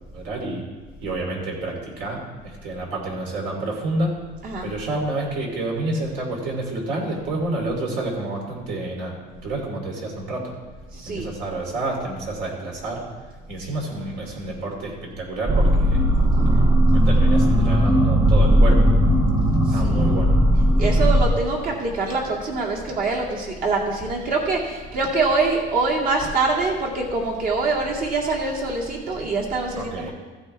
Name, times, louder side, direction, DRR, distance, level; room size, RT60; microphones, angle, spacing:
voice 1, 0.1-0.6 1.0-4.1 4.6-10.5 11.1-13.0 13.5-16.0 16.5-16.7 17.0-18.8 19.7-20.3 29.8-30.1, right 2 dB, 65° right, -1 dB, 3.0 m, -29 dB
voice 2, 10.9-11.3 19.7-19.8 20.8-30.1, right 3 dB, 50° right, -2 dB, 2.4 m, -24 dB
sound 1, 15.5-21.3, equal, 25° right, 1.1 m, -17 dB
15.0 x 8.2 x 3.4 m, 1.4 s
cardioid pair, 155°, 19 cm